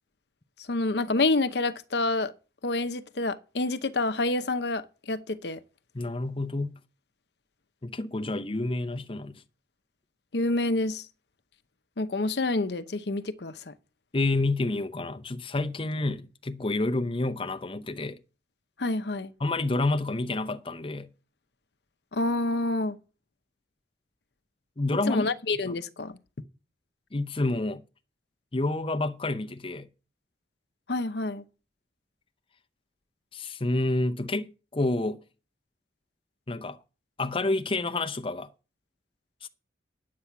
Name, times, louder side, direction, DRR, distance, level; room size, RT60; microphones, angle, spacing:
voice 1, 0.7-2.3 2.6-5.6 10.3-11.0 12.0-13.7 18.8-19.3 22.1-23.0 25.1-26.2 30.9-31.4, left 2 dB, 65° left, 0.8 m, -28 dB
voice 2, 5.9-6.8 7.8-9.4 14.1-18.2 19.4-21.1 24.8-25.3 27.1-27.8 28.5-29.9 33.3-35.2 36.5-36.8 37.2-38.5 39.4-39.5, left 2 dB, 30° left, 0.7 m, -29 dB
9.9 x 8.5 x 5.8 m
head